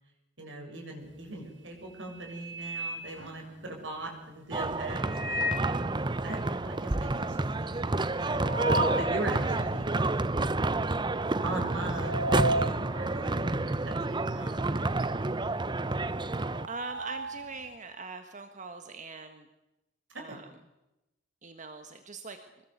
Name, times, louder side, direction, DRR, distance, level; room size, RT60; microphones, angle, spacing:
voice 1, 0.4-5.0 5.3-5.5 6.2-8.5 8.9-9.9 11.4-15.5 20.3-20.4, right 2 dB, 90° right, 2 dB, 7.4 m, -41 dB
sound 1, 1.1-1.4 1.8-3.9 4.9-5.8 6.2-6.3 6.6-6.7 7.0-9.2 9.7-9.8 10.6-10.9 11.1-14.5 14.7-17.7, right 1 dB, 75° right, 3.4 m, -35 dB
sound 2, 4.5-16.7, right 2 dB, 25° right, 0.8 m, -29 dB
voice 2, 16.4-19.5 20.1-20.5 21.4-22.4, right 3 dB, 40° right, 7 dB, 1.6 m, -42 dB
25.0 x 21.0 x 8.2 m, 0.96 s
head